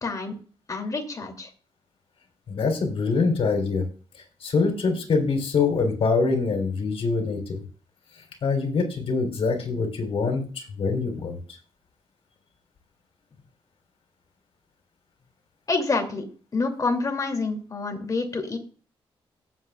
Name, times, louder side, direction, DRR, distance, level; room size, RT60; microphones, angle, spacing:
voice 1, 0.0-0.4 0.7-1.5 15.7-16.2 16.5-18.6, left 3 dB, 35° left, 4 dB, 2.7 m, -27 dB
voice 2, 2.5-3.8 4.4-7.6 8.4-11.4, left 4 dB, 70° left, 4 dB, 3.4 m, -24 dB
17.5 x 7.8 x 2.4 m, 0.39 s
cardioid pair, 90°, 10 cm